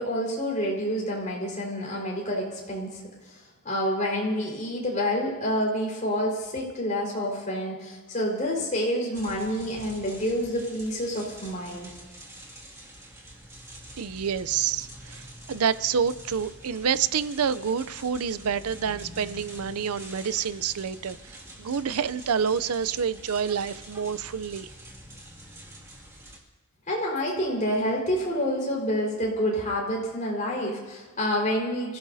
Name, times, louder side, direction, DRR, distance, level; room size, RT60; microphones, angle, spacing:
voice 1, 0.0-3.4 3.6-11.9 26.9-32.0, equal, 35° left, -2 dB, 4.7 m, -28 dB
sound 1, 9.1-26.4, right 1 dB, 15° right, 2.2 m, -46 dB
voice 2, 14.0-24.7, right 7 dB, 80° right, 15 dB, 0.5 m, -28 dB
28.5 x 16.0 x 2.7 m, 1.3 s
head